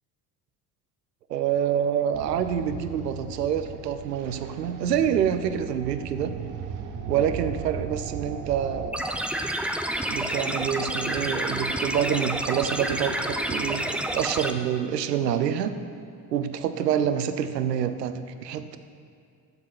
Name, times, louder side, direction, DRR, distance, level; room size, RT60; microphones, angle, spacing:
voice 1, 1.3-6.4 7.1-9.0 10.1-13.9 14.1-15.7 16.3-18.1 18.4-18.8, right 9 dB, 85° right, 10 dB, 0.6 m, -27 dB
sound 1, 2.1-8.9, right 6 dB, 40° right, 1.0 m, -37 dB
sound 2, 8.9-14.5, right 1 dB, 5° right, 0.4 m, -29 dB
9.4 x 7.4 x 6.2 m, 2.3 s
figure-of-eight pair, 55°, 47 cm